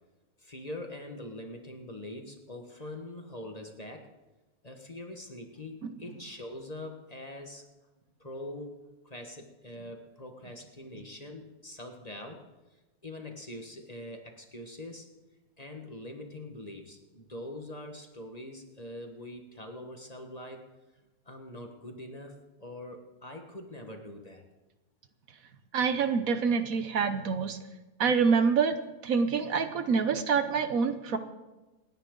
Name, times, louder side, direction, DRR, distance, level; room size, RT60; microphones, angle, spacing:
voice 1, 0.4-4.1 4.6-7.7 8.2-12.4 13.0-15.1 15.6-20.7 21.2-24.4, left 1 dB, 25° left, 3 dB, 1.5 m, -43 dB
voice 2, 25.7-27.6 28.0-28.7 29.0-31.2, right 5 dB, 65° right, 9 dB, 1.3 m, -26 dB
28.0 x 10.0 x 3.8 m, 1.1 s
omnidirectional pair, 1.6 m